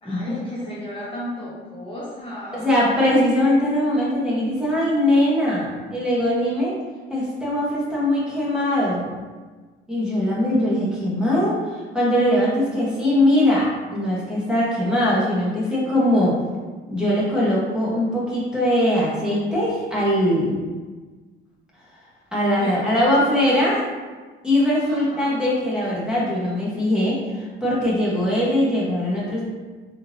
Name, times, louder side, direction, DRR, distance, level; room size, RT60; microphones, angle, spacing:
voice 1, 0.0-2.8 22.6-23.7 24.9-25.4, left 1 dB, 25° left, -7 dB, 0.8 m, -35 dB
voice 2, 2.5-6.7 7.1-9.1 9.9-11.6 11.9-16.3 16.9-20.6 22.3-23.8 24.4-29.4, left 1 dB, 5° right, -8 dB, 1.0 m, -21 dB
3.6 x 2.8 x 2.6 m, 1.4 s
cardioid pair, 125°, 21 cm